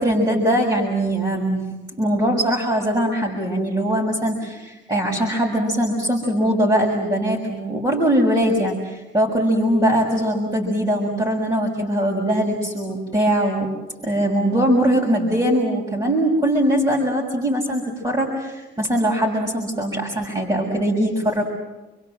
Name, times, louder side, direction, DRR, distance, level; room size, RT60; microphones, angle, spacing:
voice 1, 0.0-1.7 2.0-13.7 14.0-21.4, right 1 dB, 20° right, -2 dB, 6.0 m, -21 dB
30.0 x 22.5 x 7.8 m, 1.1 s
cardioid pair, 90°, 20 cm